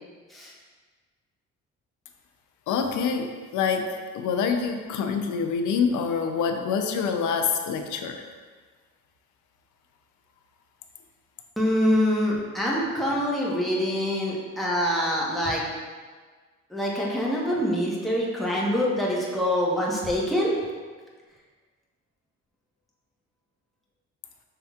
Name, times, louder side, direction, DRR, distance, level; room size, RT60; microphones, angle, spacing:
voice 1, 2.7-8.2, left 6 dB, 80° left, 6 dB, 0.5 m, -26 dB
voice 2, 11.6-15.6 16.7-20.5, equal, ahead, -5 dB, 1.1 m, -25 dB
5.8 x 3.5 x 2.4 m, 1.5 s
cardioid pair, 90°, 30 cm